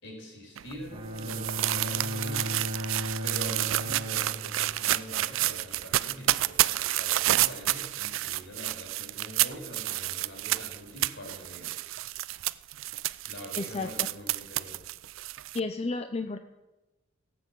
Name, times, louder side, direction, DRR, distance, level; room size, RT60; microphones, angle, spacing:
voice 1, 0.0-2.7 3.2-11.7 13.3-14.8, equal, 60° left, 0 dB, 5.0 m, -44 dB
sound 1, 0.6-15.6, right 15 dB, 80° right, 0.4 m, -30 dB
Bowed string instrument, 0.9-5.0, equal, 25° right, 1.4 m, -36 dB
voice 2, 13.5-14.1 15.5-16.4, left 3 dB, 30° left, 8 dB, 0.5 m, -32 dB
17.5 x 7.7 x 8.2 m, 1.1 s
head